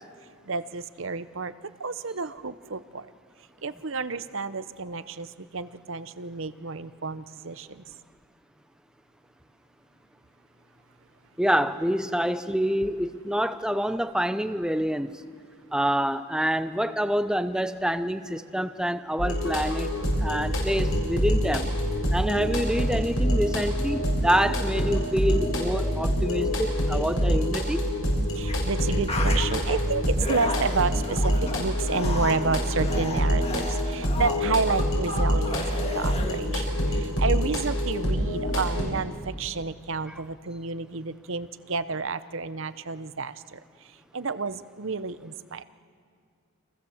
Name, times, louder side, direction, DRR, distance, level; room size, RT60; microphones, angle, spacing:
voice 1, 0.5-1.5 1.8-3.1 3.6-7.8 28.3-43.6 44.1-45.6, right 4 dB, 60° right, 13 dB, 0.8 m, -30 dB
voice 2, 11.4-15.2 15.7-19.9 20.2-21.7 22.1-27.9, equal, 5° right, 11 dB, 0.7 m, -27 dB
sound 1, 19.2-38.8, equal, 60° left, 7.3 m, -26 dB
sound 2, 28.5-28.6 28.9-29.8 30.2-36.4, left 2 dB, 25° left, 1.9 m, -34 dB
29.5 x 26.0 x 7.3 m, 2.1 s
head